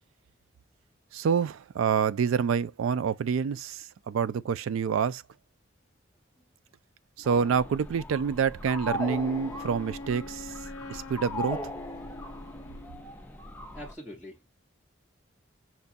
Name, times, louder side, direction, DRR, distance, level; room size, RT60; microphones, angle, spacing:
voice 1, 1.1-5.2 7.2-10.5 10.9-11.6, right 6 dB, 90° right, 0.3 m, -27 dB
sound 1, 7.2-13.9, left 1 dB, 10° left, 0.4 m, -39 dB
Wind instrument woodwind instrument, 8.8-13.2, left 2 dB, 90° left, 0.5 m, -44 dB
voice 2, 13.7-14.5, equal, 10° right, 0.8 m, -43 dB
5.8 x 2.2 x 2.6 m
head